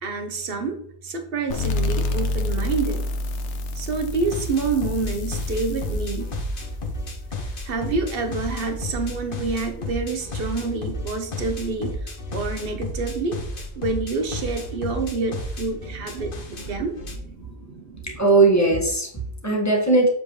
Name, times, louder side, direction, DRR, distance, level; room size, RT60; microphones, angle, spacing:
voice 1, 0.0-3.0 3.8-6.3 7.6-13.4 13.8-18.1, right 4 dB, 55° right, 6 dB, 1.2 m, -28 dB
sound 1, 1.5-8.8, left 2 dB, 90° left, 1.1 m, -29 dB
sound 2, 4.2-17.2, left 1 dB, 50° left, 1.2 m, -33 dB
voice 2, 18.0-20.1, right 3 dB, 15° left, -2 dB, 1.6 m, -19 dB
7.3 x 5.2 x 3.2 m, 0.65 s
omnidirectional pair, 1.2 m